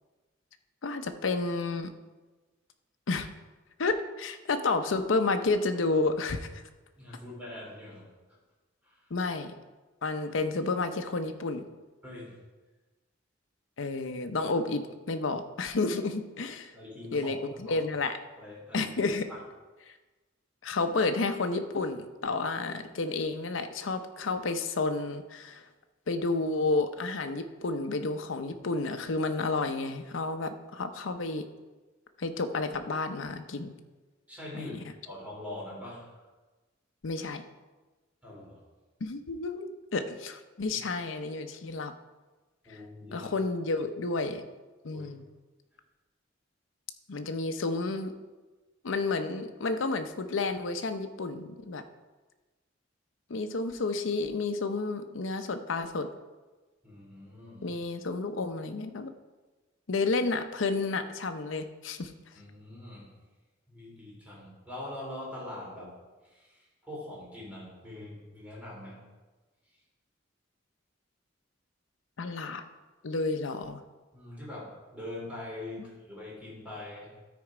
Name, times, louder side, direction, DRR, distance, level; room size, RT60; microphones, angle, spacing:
voice 1, 0.8-1.9 3.1-3.3 3.8-6.6 9.1-9.5 10.0-11.6 13.8-16.7 17.1-18.2 18.7-19.3 19.9-20.0 20.6-25.7 26.1-31.4 32.2-33.7 34.5-34.8 37.0-37.4 39.0-41.9 42.7-42.8 43.1-44.4 44.8-45.2 47.1-48.1 48.8-51.8 53.3-56.1 57.6-59.1 59.9-62.1 72.2-72.6 73.0-73.8, left 3 dB, 85° left, 7 dB, 0.7 m, -31 dB
voice 2, 7.0-8.4 8.8-9.1 12.0-12.4 16.7-17.8 18.4-18.9 19.3-19.4 34.3-34.7 35.0-36.1 38.2-38.6 40.7-40.8 42.6-43.3 44.9-45.1 56.8-57.7 62.3-63.1 63.7-65.9 66.2-69.0 74.1-77.1, left 1 dB, 5° right, -6 dB, 3.3 m, -43 dB
12.5 x 4.5 x 4.9 m, 1.2 s
head